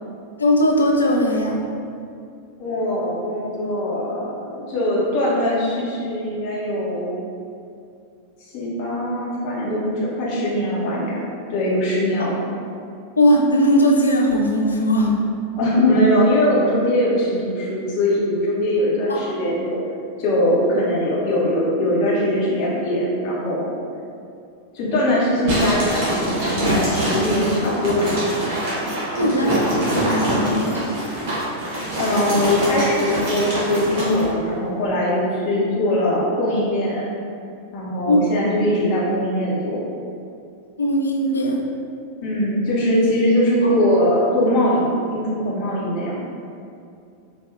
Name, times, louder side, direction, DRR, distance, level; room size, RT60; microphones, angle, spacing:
voice 1, 0.4-1.6 12.2-12.3 13.2-15.1 19.1-19.2 29.2-30.8 38.1-38.2 40.8-41.6 43.6-43.7, equal, 75° left, 0 dB, 0.4 m, -19 dB
voice 2, 2.6-7.2 8.5-11.2 11.5-12.4 15.6-19.8 20.2-23.7 24.7-28.1 32.0-37.0 37.7-39.8 42.2-46.1, left 1 dB, 45° left, -5 dB, 1.0 m, -21 dB
sound 1, 25.5-34.3, right 1 dB, 45° right, 1.3 m, -24 dB
4.6 x 2.6 x 2.4 m, 2.5 s
figure-of-eight pair, 90°, 0 cm